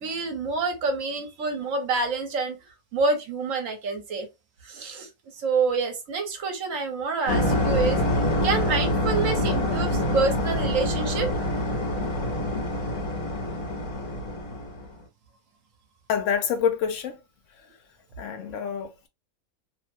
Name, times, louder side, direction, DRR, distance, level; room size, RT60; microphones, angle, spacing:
voice 1, 0.0-2.6 2.9-4.3 4.6-5.1 5.4-8.0 8.4-11.3, right 4 dB, 70° right, 1.2 m, -27 dB
sound 1, 7.3-14.9, left 1 dB, 85° left, 1.3 m, -26 dB
voice 2, 16.1-17.2 17.5-17.7 18.2-19.1, left 7 dB, 70° left, 0.9 m, -27 dB
3.1 x 2.0 x 3.0 m
omnidirectional pair, 1.4 m